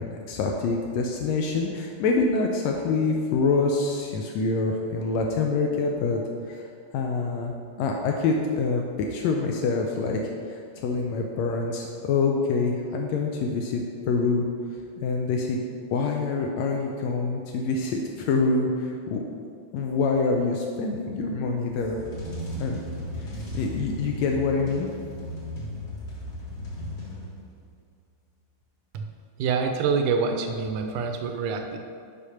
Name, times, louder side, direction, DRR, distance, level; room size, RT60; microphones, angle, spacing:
voice 1, 0.0-6.2 6.5-6.6 6.9-10.2 10.4-14.4 15.0-15.6 15.9-19.3 19.7-22.0 22.6-22.8 23.2-24.9, left 4 dB, 85° left, 1 dB, 1.5 m, -26 dB
sound 1, 21.7-27.7, equal, 35° left, 1.5 m, -36 dB
voice 2, 29.4-31.8, right 5 dB, 80° right, 5 dB, 2.1 m, -26 dB
6.5 x 5.2 x 5.7 m, 2.2 s
omnidirectional pair, 3.7 m